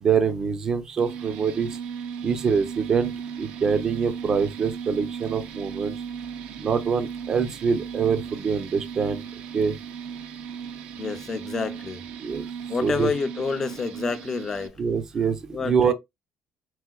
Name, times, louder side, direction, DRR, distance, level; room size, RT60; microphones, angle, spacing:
voice 1, 0.0-1.7 2.2-3.1 3.4-6.0 6.6-9.2 9.5-9.8 12.2-12.5 12.8-13.1 14.8-15.9, right 6 dB, 30° right, 0.5 m, -24 dB
sound 1, 1.0-14.7, right 7 dB, 70° right, 0.6 m, -36 dB
voice 2, 11.0-12.0 12.7-14.8 15.5-15.9, left 4 dB, 20° left, 0.5 m, -28 dB
4.7 x 3.6 x 2.3 m
cardioid pair, 165°, 2 cm